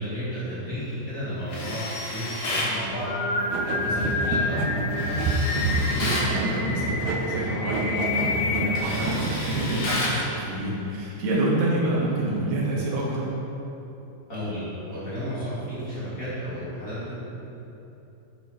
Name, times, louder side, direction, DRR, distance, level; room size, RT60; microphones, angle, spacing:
voice 1, 0.0-3.1 3.6-5.3 14.3-17.1, equal, 35° left, -10 dB, 1.6 m, -32 dB
Tools, 1.5-2.8 4.9-6.3 7.8-8.0 8.4-10.2, left 1 dB, 65° left, 1.2 m, -31 dB
Singing, 2.8-8.8, left 3 dB, 85° left, 2.5 m, -29 dB
sound 1, 3.5-10.0, right 3 dB, 85° right, 2.4 m, -30 dB
voice 2, 5.7-13.2, right 1 dB, 70° right, -5 dB, 0.8 m, -28 dB
8.1 x 6.1 x 4.8 m, 2.9 s
omnidirectional pair, 4.2 m